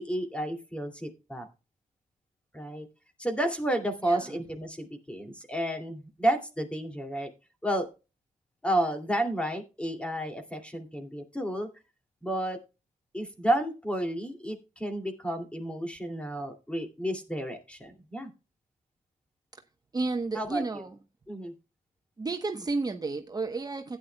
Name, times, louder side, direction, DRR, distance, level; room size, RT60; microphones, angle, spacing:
voice 1, 0.0-1.5 2.5-2.9 3.2-7.3 7.6-7.9 8.6-11.7 12.2-12.6 13.1-18.3 20.3-20.8 21.3-21.5, right 1 dB, 10° left, 2.4 m, -31 dB
voice 2, 4.0-4.4 19.9-21.0 22.2-24.0, right 3 dB, 30° right, 0.9 m, -32 dB
15.5 x 9.4 x 2.2 m
wide cardioid pair, 105°, 14 cm